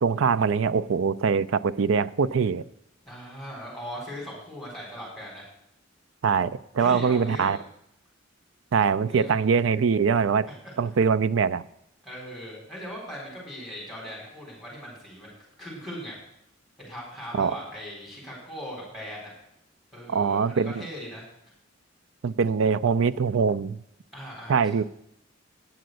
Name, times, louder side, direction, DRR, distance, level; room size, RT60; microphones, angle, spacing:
voice 1, 0.0-2.6 6.2-7.6 8.7-10.5 10.8-11.6 17.3-17.5 20.1-20.9 22.2-23.8 24.5-24.8, right 6 dB, 75° right, 0.4 m, -23 dB
voice 2, 3.0-5.5 6.8-7.6 8.8-9.4 10.5-10.7 12.0-15.3 15.6-16.2 16.8-19.3 19.9-21.3 24.1-24.8, equal, ahead, 4.0 m, -39 dB
9.2 x 7.7 x 7.7 m
head